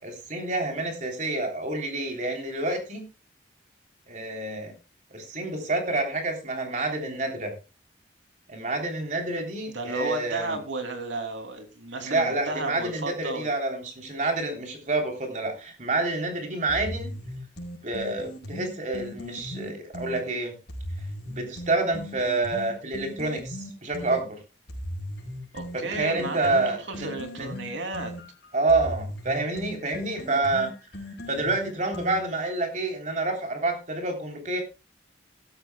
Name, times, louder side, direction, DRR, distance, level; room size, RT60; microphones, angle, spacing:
voice 1, 0.0-3.0 4.1-4.7 5.1-7.5 8.5-10.6 12.0-17.1 17.8-20.6 21.2-24.4 25.7-27.1 27.4-27.5 28.5-30.7 31.3-34.6, right 2 dB, 40° right, 3 dB, 3.4 m, -28 dB
voice 2, 9.7-13.5 25.5-26.6 26.9-28.1, right 2 dB, 80° right, 5 dB, 2.9 m, -33 dB
sound 1, 16.7-20.2 20.7-24.2 24.7-32.5, equal, 65° left, 4.7 m, -38 dB
15.5 x 13.0 x 2.3 m, 0.29 s
head